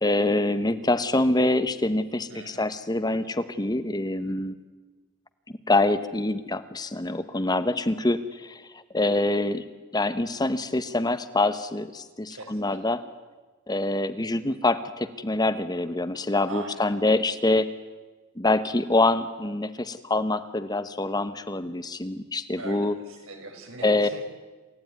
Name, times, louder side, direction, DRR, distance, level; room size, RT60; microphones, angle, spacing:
voice 1, 0.0-4.6 5.7-9.6 9.9-13.0 13.7-17.7 18.4-22.9 23.8-24.1, left 2 dB, 20° left, 11 dB, 1.0 m, -25 dB
voice 2, 2.3-2.7 12.3-12.8 16.5-16.9 22.6-24.2, right 2 dB, 85° right, 3 dB, 5.2 m, -41 dB
28.0 x 15.0 x 9.5 m, 1.3 s
head